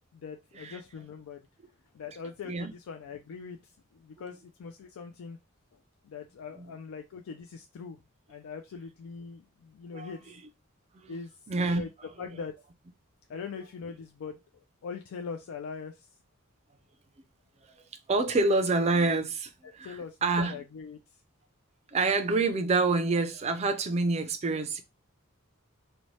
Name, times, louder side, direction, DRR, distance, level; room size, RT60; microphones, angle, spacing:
voice 1, 0.1-1.4 1.9-5.4 6.0-8.0 8.3-10.3 11.1-11.3 11.7-11.9 12.2-12.5 13.3-16.1 19.8-21.0, left 5 dB, 75° left, 0.3 m, -42 dB
voice 2, 11.5-11.9 18.1-20.0 20.2-20.6 21.9-24.8, right 3 dB, 30° right, 0.4 m, -27 dB
2.7 x 2.1 x 3.0 m
head